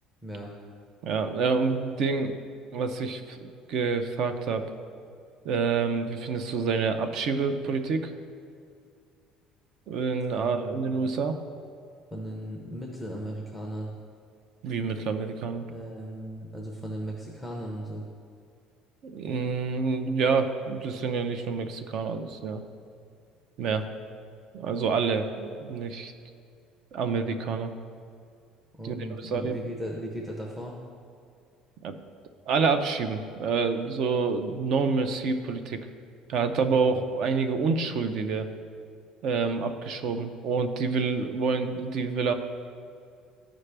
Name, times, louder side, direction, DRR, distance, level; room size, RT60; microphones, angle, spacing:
voice 1, 1.0-2.4 2.7-4.6 5.4-8.1 9.9-11.4 14.6-15.7 19.0-22.6 23.6-23.9 24.5-26.1 26.9-27.7 28.8-29.6 31.8-32.0 32.5-35.9 36.3-38.5 39.2-42.3, right 5 dB, 45° right, 8 dB, 0.5 m, -27 dB
voice 2, 10.3-10.9 12.1-13.9 15.7-18.0 28.8-30.8, right 1 dB, 5° right, -2 dB, 0.6 m, -37 dB
13.0 x 5.0 x 3.3 m, 2.3 s
cardioid pair, 175°, 0 cm